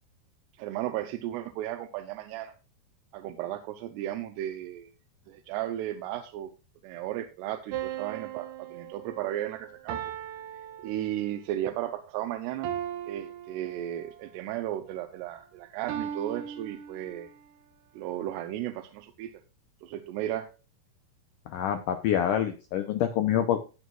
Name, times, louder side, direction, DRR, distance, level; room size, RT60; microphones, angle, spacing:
voice 1, 0.6-2.5 3.1-4.9 5.3-6.5 6.8-10.0 10.8-12.7 13.1-17.3 17.9-19.3 19.8-20.5, right 12 dB, 85° right, 6 dB, 2.8 m, -34 dB
sound 1, 7.7-11.5 12.6-14.2 15.9-17.4, right 10 dB, 70° right, 2.2 m, -38 dB
voice 2, 21.5-23.6, left 10 dB, 90° left, 7 dB, 1.8 m, -26 dB
18.5 x 6.4 x 2.4 m, 0.32 s
omnidirectional pair, 4.8 m